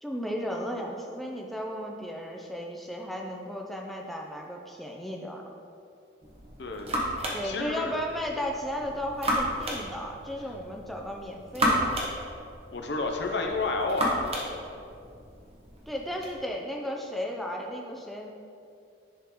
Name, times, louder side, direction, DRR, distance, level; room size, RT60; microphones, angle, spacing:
voice 1, 0.0-5.4 7.3-11.9 15.9-18.3, equal, ahead, 0 dB, 0.5 m, -34 dB
sound 1, 6.2-16.3, equal, 30° right, 1.0 m, -33 dB
voice 2, 6.6-6.9 7.4-8.0 12.7-14.6, left 3 dB, 60° left, 3 dB, 0.7 m, -30 dB
10.0 x 3.7 x 3.0 m, 2.4 s
head